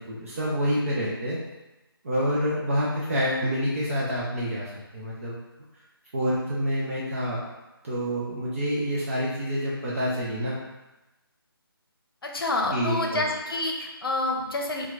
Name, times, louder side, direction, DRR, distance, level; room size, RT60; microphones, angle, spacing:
voice 1, 0.0-1.4 2.0-5.3 6.1-7.4 7.8-10.6 12.7-13.2, equal, 35° right, -7 dB, 0.6 m, -27 dB
voice 2, 12.2-14.9, left 2 dB, 65° left, 1 dB, 0.7 m, -28 dB
4.3 x 2.3 x 2.4 m, 1.0 s
figure-of-eight pair, 155°, 13 cm